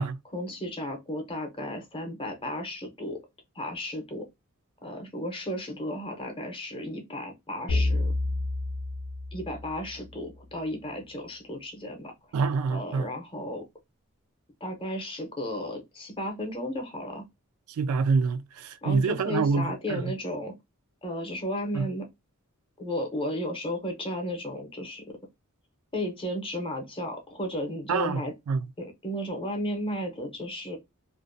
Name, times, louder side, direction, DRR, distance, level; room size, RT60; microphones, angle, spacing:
voice 1, 0.3-3.2 3.5-4.3 4.8-8.1 9.3-12.1 12.7-13.7 14.6-17.2 18.8-20.6 21.0-22.1 22.8-25.2 25.9-28.3 28.8-30.8, left 1 dB, 25° left, 0.7 m, -34 dB
sound 1, 7.7-10.2, left 2 dB, 65° left, 0.5 m, -29 dB
voice 2, 12.3-13.1 17.8-20.0 21.7-21.9 27.9-28.2 28.5-28.6, right 5 dB, 80° right, 0.3 m, -26 dB
2.5 x 2.2 x 2.5 m
head